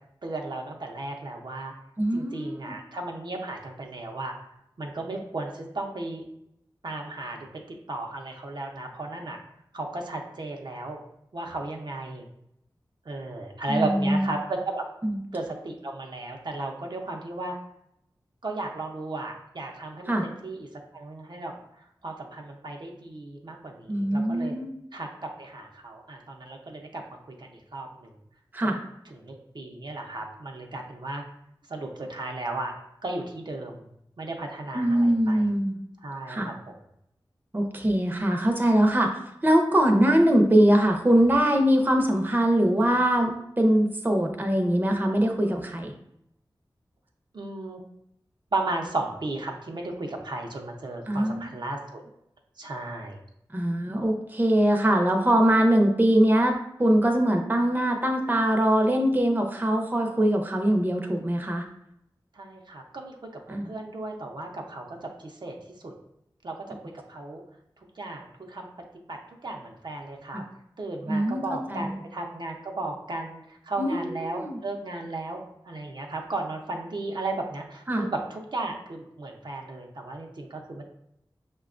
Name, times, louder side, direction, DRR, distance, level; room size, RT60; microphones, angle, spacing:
voice 1, 0.2-1.7 2.1-4.5 4.8-6.2 6.8-9.4 9.7-11.0 11.3-12.2 13.0-14.8 15.3-17.6 18.4-20.7 20.9-24.5 24.9-28.1 28.6-28.8 29.1-31.2 31.7-32.7 33.0-33.9 34.2-35.5 36.0-36.7 47.3-47.8 48.5-52.0 52.6-53.2 62.3-63.2 63.5-65.6 65.8-65.9 66.4-67.4 68.0-68.7 69.1-70.4 70.8-80.8, right 2 dB, 60° right, 1 dB, 0.6 m, -35 dB
voice 2, 2.0-2.7 13.7-14.2 15.0-15.2 20.1-20.3 23.9-24.7 28.5-28.8 34.7-35.8 36.3-36.5 37.5-39.1 39.4-45.9 51.1-51.5 53.5-61.6 63.5-63.7 70.3-70.4 71.1-71.4 71.7-71.9 73.8-74.6 77.9-78.1, right 1 dB, 25° right, 2 dB, 0.6 m, -22 dB
5.5 x 2.2 x 2.4 m, 0.78 s
cardioid pair, 40°, 8 cm